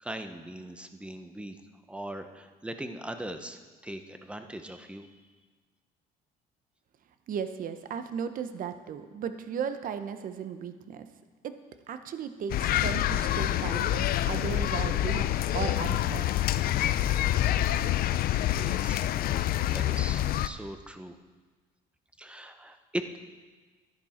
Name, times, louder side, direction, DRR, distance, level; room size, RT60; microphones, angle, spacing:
voice 1, 0.0-1.6 1.9-5.1 18.4-21.2 22.2-23.2, right 1 dB, 5° right, 7 dB, 0.8 m, -40 dB
voice 2, 7.3-11.1 11.4-11.6 11.9-15.3 15.5-16.3, right 7 dB, 55° right, 9 dB, 0.9 m, -36 dB
sound 1, 12.5-20.5, left 13 dB, 60° left, 0.5 m, -27 dB
12.0 x 10.5 x 4.4 m, 1.4 s
cardioid pair, 110°, 17 cm